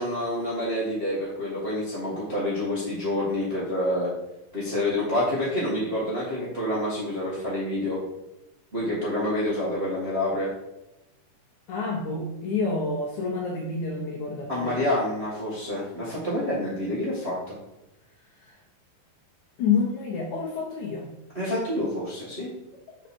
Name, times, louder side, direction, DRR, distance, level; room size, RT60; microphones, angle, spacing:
voice 1, 0.0-4.1 4.5-8.0 8.7-10.5 14.5-17.5 21.3-22.5, left 1 dB, 30° right, -8 dB, 1.1 m, -28 dB
voice 2, 11.7-14.7 18.4-18.6 19.6-21.1, left 4 dB, 70° left, -2 dB, 1.9 m, -28 dB
5.2 x 4.8 x 4.3 m, 0.95 s
omnidirectional pair, 4.2 m